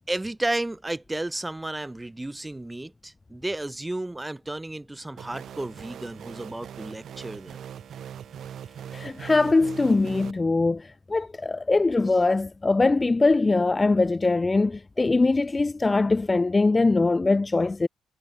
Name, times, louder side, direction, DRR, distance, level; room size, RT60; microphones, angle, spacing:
voice 1, 0.0-7.6, right 2 dB, 10° right, 3.4 m, -32 dB
sound 1, 5.2-10.3, right 9 dB, 65° right, 7.2 m, -41 dB
voice 2, 8.9-17.9, left 3 dB, 20° left, 1.1 m, -22 dB
cardioid pair, 90°, 0 cm